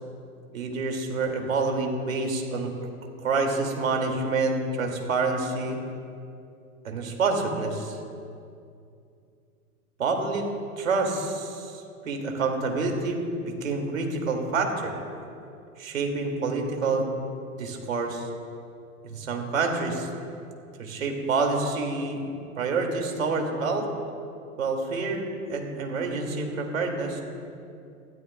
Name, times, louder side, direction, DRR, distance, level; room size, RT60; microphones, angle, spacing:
voice 1, 0.5-2.7 3.2-5.8 6.8-8.0 10.0-10.5 10.8-14.9 15.8-17.1 17.6-18.3 19.0-20.3 20.8-23.9 24.6-27.2, right 3 dB, 60° right, 2 dB, 2.8 m, -28 dB
23.5 x 15.5 x 2.5 m, 2.5 s
figure-of-eight pair, 105°, 44 cm